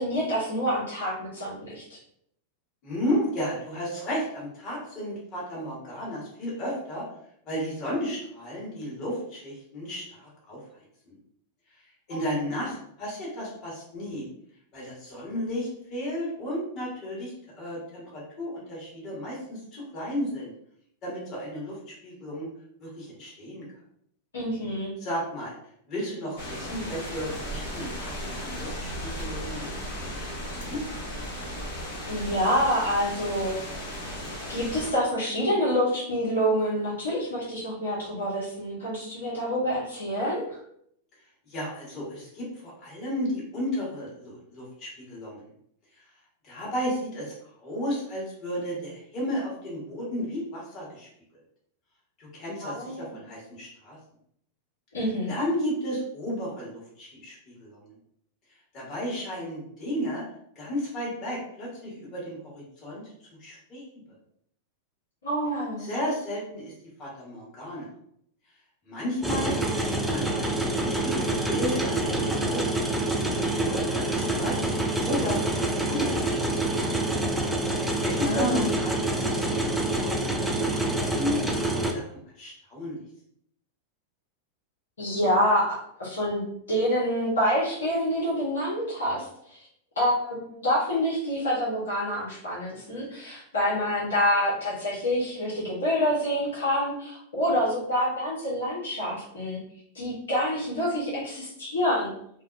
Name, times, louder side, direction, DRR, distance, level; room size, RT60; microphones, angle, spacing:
voice 1, 0.0-2.0 12.1-12.2 24.3-24.9 32.1-33.5 34.5-40.6 52.6-53.2 54.9-55.3 65.2-65.9 78.2-78.7 85.0-89.6 90.0-99.6 99.9-102.1, equal, 85° left, -6 dB, 0.8 m, -27 dB
voice 2, 2.8-7.0 7.4-10.6 11.0-11.2 12.1-14.3 14.7-20.5 21.0-22.5 22.8-23.7 25.0-25.5 25.9-28.1 28.4-29.6 30.6-30.8 41.5-45.5 46.4-51.1 52.2-54.0 55.3-57.9 58.7-60.2 60.5-63.0 63.4-63.8 65.8-66.7 67.0-67.9 68.8-69.5 69.8-70.5 70.8-72.6 73.1-74.5 75.0-76.5 78.0-79.9 80.2-80.3 80.9-81.4 81.8-83.0, equal, 40° left, -5 dB, 1.5 m, -33 dB
sound 1, 26.4-34.9, equal, 60° left, 1.0 m, -36 dB
sound 2, 69.2-81.9, right 2 dB, 5° right, 0.4 m, -27 dB
2.6 x 2.2 x 2.5 m, 0.70 s
hypercardioid pair, 105°, 0 cm